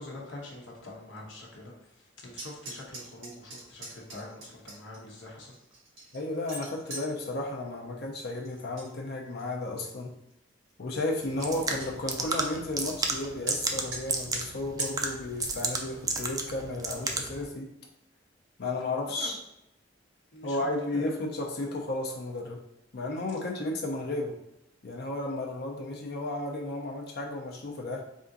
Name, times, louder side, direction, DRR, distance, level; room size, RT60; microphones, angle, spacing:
voice 1, 0.0-1.7 2.2-5.5 19.1-19.3 20.3-21.2, left 2 dB, 80° left, -3 dB, 0.9 m, -44 dB
sound 1, 2.3-5.0 5.5-7.1 8.4-8.9 9.3-9.7 10.3-10.4 10.7-10.8 11.1-11.2 11.4-11.9 13.5-13.6 13.9-14.0 14.3-14.4 14.8-14.9, right 1 dB, 85° right, 1.5 m, -42 dB
voice 2, 6.1-10.1 10.8-17.7 18.6-19.4 20.4-22.6 22.9-24.4 24.8-28.0, left 2 dB, 60° left, -1 dB, 0.6 m, -33 dB
sound 2, 11.2-17.4, right 3 dB, 20° right, 0.4 m, -33 dB
3.5 x 2.6 x 3.8 m, 0.83 s
head